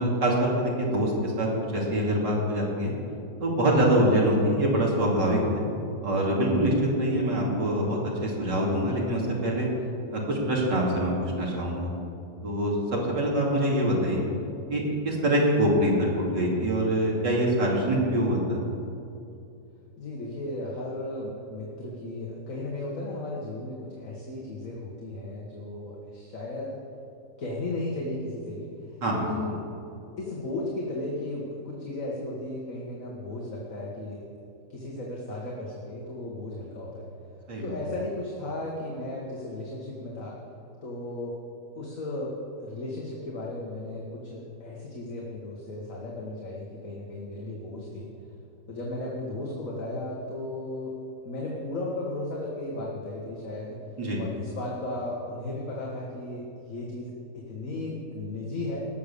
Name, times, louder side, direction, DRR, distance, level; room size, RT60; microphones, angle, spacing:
voice 1, 0.0-2.9 3.4-5.6 6.0-9.7 10.1-11.9 12.4-12.8 13.1-14.2 14.7-18.6 29.0-29.2 37.5-37.7 54.0-54.2, right 1 dB, 85° right, -3 dB, 3.2 m, -24 dB
voice 2, 20.0-26.8 27.4-29.7 30.2-34.2 34.7-37.1 37.6-40.4 40.8-41.3 41.8-42.3 42.6-48.1 48.7-51.0 51.3-53.8 54.2-58.9, left 2 dB, 50° left, -4 dB, 1.9 m, -35 dB
19.0 x 6.8 x 6.9 m, 2.6 s
omnidirectional pair, 1.9 m